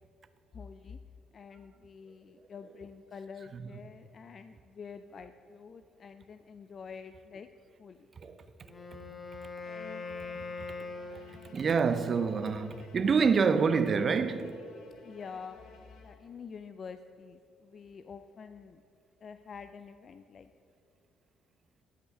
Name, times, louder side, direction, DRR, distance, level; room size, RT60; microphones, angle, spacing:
voice 1, 0.5-1.0 1.3-7.5 7.8-8.1 15.0-15.6 16.0-18.8 19.2-20.5, left 6 dB, 50° left, 0.4 m, -47 dB
voice 2, 8.2-8.5 8.7-9.1 11.1-14.6, right 5 dB, 45° right, 0.6 m, -28 dB
Wind instrument woodwind instrument, 8.6-11.9, left 4 dB, 25° left, 1.1 m, -42 dB
Bowed string instrument, 9.6-16.6, left 4 dB, 70° left, 1.2 m, -55 dB
11.5 x 5.4 x 6.6 m
supercardioid pair, 60°, 0 cm